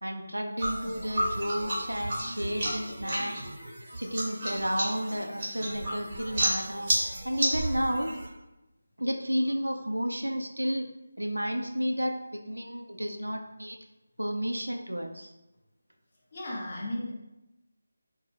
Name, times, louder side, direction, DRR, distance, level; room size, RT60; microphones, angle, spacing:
voice 1, 0.0-3.4 4.0-6.9 7.2-8.1 9.0-10.9 11.2-13.8 14.2-15.3, equal, 90° right, 3 dB, 0.4 m, -31 dB
sound 1, 0.6-8.3, right 1 dB, 35° right, 1.0 m, -32 dB
voice 2, 16.3-17.1, left 1 dB, 40° left, -4 dB, 0.8 m, -34 dB
2.5 x 2.4 x 3.3 m, 0.95 s
figure-of-eight pair, 160°, 0 cm